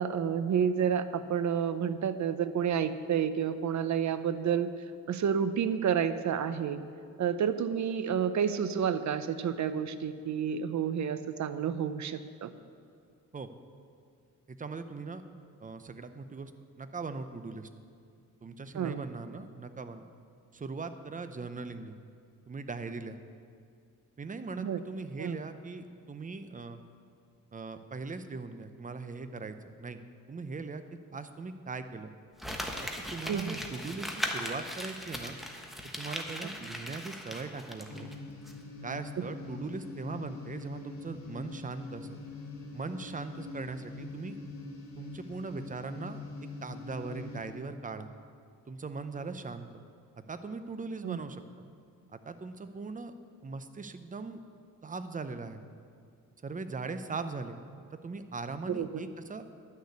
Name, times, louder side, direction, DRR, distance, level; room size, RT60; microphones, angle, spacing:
voice 1, 0.0-4.7 5.1-6.8 7.2-12.5 18.7-19.0 24.6-24.8 25.2-25.4 33.3-33.6 51.0-51.2 58.7-59.0, right 8 dB, 60° right, 12 dB, 0.7 m, -30 dB
voice 2, 14.5-15.2 15.6-16.5 16.8-17.7 18.4-20.1 20.5-22.0 22.5-23.2 24.2-26.8 27.5-30.0 30.3-30.8 31.1-32.1 32.8-35.3 36.0-38.1 38.8-42.2 42.7-44.3 45.0-46.2 46.6-48.1 48.7-49.8 50.3-51.4 52.1-53.1 53.4-54.4 54.8-55.6 56.4-57.6 57.9-59.4, right 4 dB, 25° right, 9 dB, 0.7 m, -40 dB
Crumpling crinkling, 32.4-38.1 38.5-38.6, equal, ahead, 1.3 m, -38 dB
sound 1, 37.9-47.5, left 3 dB, 55° left, 1.9 m, -44 dB
11.5 x 6.6 x 8.3 m, 2.4 s
cardioid pair, 100°, 32 cm